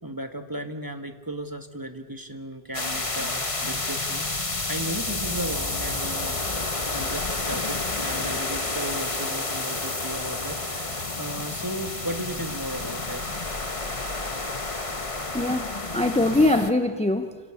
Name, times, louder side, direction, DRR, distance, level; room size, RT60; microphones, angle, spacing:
voice 1, 0.0-4.3 4.7-6.4 6.9-13.3, right 1 dB, 20° right, 7 dB, 1.6 m, -35 dB
sound 1, 2.7-16.7, left 2 dB, 30° left, 1.6 m, -30 dB
voice 2, 15.3-17.4, left 1 dB, 5° left, 8 dB, 1.0 m, -22 dB
29.5 x 27.5 x 7.2 m, 1.5 s
omnidirectional pair, 1.1 m